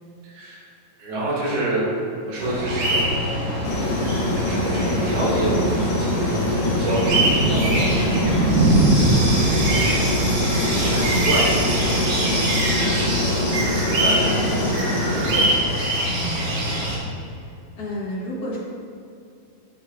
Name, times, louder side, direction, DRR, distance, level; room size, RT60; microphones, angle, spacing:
voice 1, 0.2-0.7 1.0-1.9 2.2-3.1 3.7-4.0 4.3-9.5 9.8-11.9 12.2-12.5 13.9-15.5 15.9-16.0, right 1 dB, 85° right, -6 dB, 4.4 m, -29 dB
sound 1, 2.4-17.0, right 1 dB, 45° right, 2.8 m, -24 dB
sound 2, 3.6-15.4, left 1 dB, 70° left, 3.4 m, -24 dB
Thunder, 7.0-12.0, right 2 dB, 65° right, 2.7 m, -22 dB
voice 2, 16.1-16.4 17.3-17.4 17.7-18.6, equal, 85° left, -6 dB, 0.8 m, -31 dB
12.0 x 8.9 x 2.6 m, 2.5 s
omnidirectional pair, 4.1 m